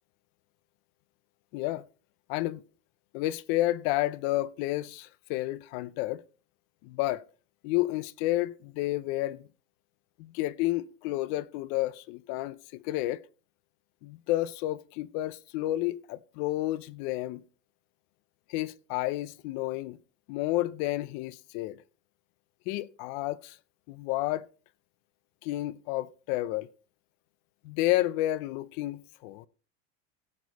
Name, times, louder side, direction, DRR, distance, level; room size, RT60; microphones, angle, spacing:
voice 1, 1.5-1.8 2.3-2.6 3.1-6.2 6.8-7.2 7.6-9.5 10.2-13.2 14.0-17.4 18.5-20.0 20.3-21.8 22.7-23.6 23.9-24.5 25.4-26.7 27.6-29.5, left 16 dB, 40° left, 0.5 m, -31 dB
16.5 x 6.3 x 4.0 m
cardioid pair, 175°, 37 cm